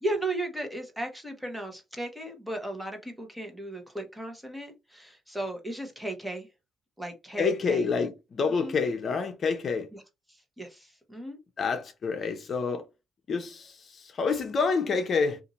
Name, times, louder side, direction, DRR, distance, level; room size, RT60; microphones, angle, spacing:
voice 1, 0.0-6.5 7.0-7.9 8.6-8.8 9.9-10.0 10.3-11.4, right 1 dB, 5° right, 1.0 m, -35 dB
voice 2, 7.4-9.9 11.6-12.8 13.3-15.4, left 5 dB, 50° left, 0.6 m, -28 dB
2.7 x 2.5 x 4.0 m
cardioid pair, 90°, 0 cm